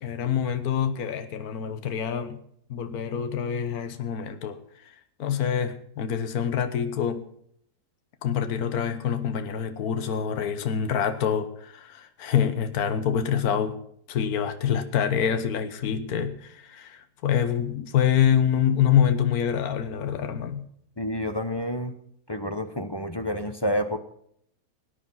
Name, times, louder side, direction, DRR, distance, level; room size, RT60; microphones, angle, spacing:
voice 1, 0.0-2.4 2.7-4.9 5.2-7.3 8.2-13.8 14.1-20.6, left 8 dB, 65° left, 8 dB, 1.6 m, -26 dB
voice 2, 21.0-22.0 22.3-24.0, equal, 20° left, 8 dB, 0.8 m, -29 dB
19.0 x 10.0 x 5.7 m, 0.68 s
omnidirectional pair, 1.7 m